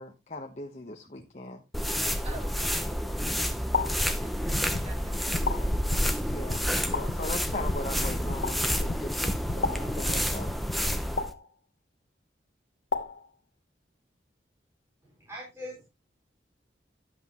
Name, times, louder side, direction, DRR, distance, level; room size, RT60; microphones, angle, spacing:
voice 1, 0.0-1.6 6.2-10.5, left 2 dB, 40° left, 2 dB, 1.1 m, -39 dB
sound 1, 1.7-11.3, equal, ahead, 0.7 m, -29 dB
voice 2, 2.2-2.9 4.2-5.6, right 2 dB, 35° right, 2 dB, 2.9 m, -47 dB
sound 2, 3.7-4.1 5.5-5.9 6.9-7.3 8.4-8.7 9.6-10.0 11.2-11.5 12.9-13.3, left 4 dB, 85° left, 1.1 m, -32 dB
sound 3, 4.5-10.8, left 2 dB, 55° left, 0.7 m, -39 dB
voice 3, 15.0-15.8, left 1 dB, 15° right, -5 dB, 4.2 m, -42 dB
11.5 x 7.9 x 3.0 m, 0.24 s
head